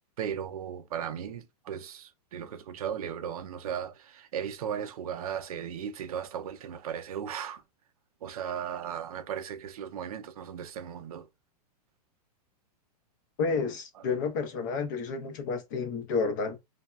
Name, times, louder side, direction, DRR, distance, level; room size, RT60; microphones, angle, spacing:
voice 1, 0.2-7.6 8.2-11.3 14.0-14.1, right 8 dB, 60° right, 0.5 m, -36 dB
voice 2, 13.4-16.6, left 4 dB, 30° left, 0.5 m, -30 dB
3.3 x 2.1 x 2.3 m
supercardioid pair, 180°, 21 cm